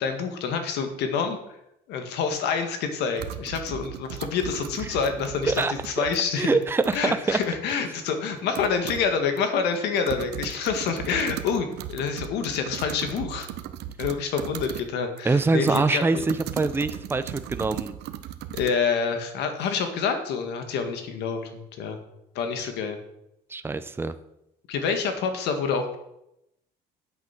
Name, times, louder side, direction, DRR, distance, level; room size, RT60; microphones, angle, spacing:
voice 1, 0.0-1.4 1.9-6.6 6.9-13.5 14.0-16.2 18.5-22.0 22.4-23.0 24.7-26.0, left 6 dB, 85° left, 6 dB, 1.9 m, -27 dB
sound 1, 2.3-2.4 3.2-6.2 6.6-7.0 7.4-7.5 8.1-8.2 8.5-9.1 9.4-9.5 9.7-14.9 15.2-18.7, right 12 dB, 80° right, 0.9 m, -37 dB
voice 2, 6.4-7.4 15.2-18.0 23.5-24.1, right 3 dB, 15° right, 11 dB, 0.6 m, -24 dB
9.2 x 8.5 x 6.0 m, 0.82 s
cardioid pair, 110°, 17 cm